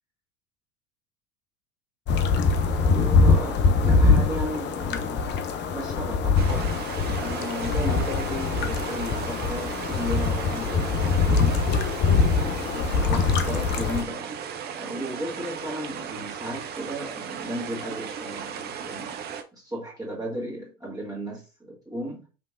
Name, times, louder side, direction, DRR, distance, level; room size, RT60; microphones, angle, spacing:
sound 1, 2.1-14.0, left 4 dB, 30° left, 0.6 m, -23 dB
voice 1, 2.7-5.3 5.6-6.8 7.2-11.7 12.7-19.2 19.5-22.2, equal, 10° right, 1.8 m, -35 dB
sound 2, 6.3-19.4, right 7 dB, 25° right, 0.5 m, -36 dB
5.5 x 3.3 x 2.5 m
figure-of-eight pair, 80°, 40 cm